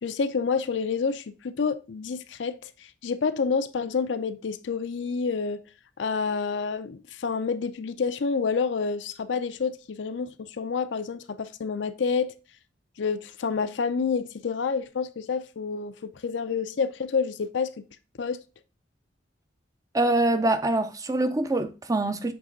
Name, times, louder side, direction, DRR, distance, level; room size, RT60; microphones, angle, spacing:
voice 1, 0.0-5.6 6.0-12.3 13.0-17.7 18.2-18.4, left 5 dB, 70° left, 0.5 m, -28 dB
voice 2, 19.9-22.3, right 2 dB, 20° right, 0.5 m, -24 dB
7.9 x 3.3 x 3.8 m
head